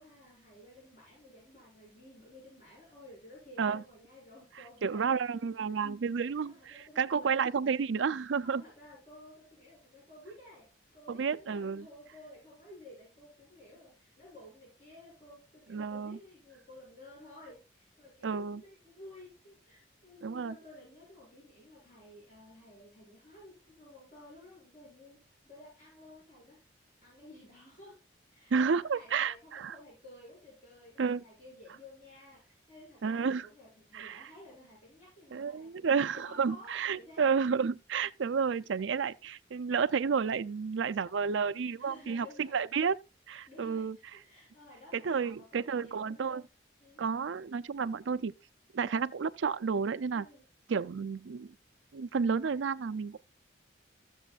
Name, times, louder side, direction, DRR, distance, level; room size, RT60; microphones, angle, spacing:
voice 1, 0.0-5.4 6.0-7.5 8.4-28.0 28.3-37.3 41.2-42.6 43.3-46.4 46.8-47.0 50.1-50.4, left 1 dB, 45° left, 6.5 m, -54 dB
voice 2, 4.8-8.6 11.1-11.8 15.7-16.2 18.2-18.6 20.2-20.5 28.5-29.7 31.0-31.2 33.0-33.5 33.9-34.3 35.3-43.0 43.3-44.0 44.9-46.4 47.0-48.3 48.7-50.3 50.7-51.5 51.9-53.2, right 6 dB, 75° right, 0.4 m, -31 dB
15.5 x 7.1 x 2.4 m
head